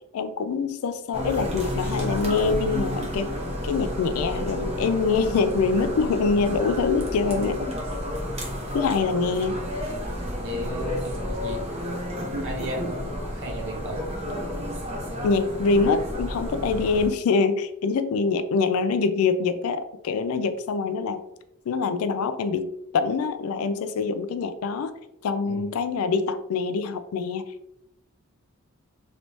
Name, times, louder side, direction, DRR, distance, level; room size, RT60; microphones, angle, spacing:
voice 1, 0.1-3.3 3.6-7.7 8.7-9.6 15.2-21.2 21.7-24.9 25.2-27.4, left 4 dB, 70° left, 10 dB, 0.3 m, -24 dB
sound 1, 1.1-17.1, equal, 30° right, 0.8 m, -31 dB
voice 2, 10.4-11.7 12.4-14.1 25.5-25.8, equal, 60° right, 0 dB, 0.8 m, -34 dB
3.1 x 3.0 x 2.7 m, 0.82 s
head